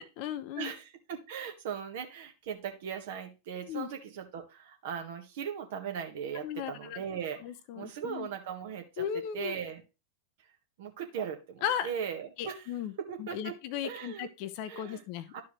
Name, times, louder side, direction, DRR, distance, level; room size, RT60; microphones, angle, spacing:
voice 1, 0.0-0.7 3.7-3.9 6.4-7.0 7.4-8.3 9.0-9.5 11.6-11.9 12.4-12.9 13.2-15.4, left 10 dB, 45° left, 12 dB, 0.8 m, -36 dB
voice 2, 0.6-7.4 7.7-9.0 9.3-9.8 10.8-12.7 13.0-13.5 13.8-14.3 14.7-15.0 15.3-15.4, right 7 dB, 55° right, 5 dB, 1.6 m, -38 dB
12.0 x 4.6 x 3.3 m, 0.28 s
figure-of-eight pair, 90°, 0 cm